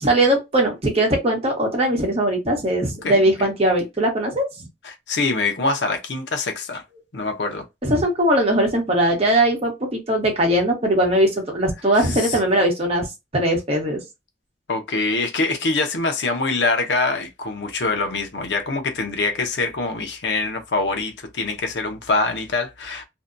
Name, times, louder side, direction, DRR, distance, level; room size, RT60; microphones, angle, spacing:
voice 1, 0.0-4.7 7.8-13.1 13.3-14.0, right 1 dB, 35° right, 1.0 m, -20 dB
voice 2, 3.0-3.5 4.8-6.8 7.1-7.6 12.0-12.4 14.7-23.0, left 3 dB, 80° left, 0.7 m, -24 dB
2.6 x 2.2 x 2.5 m
head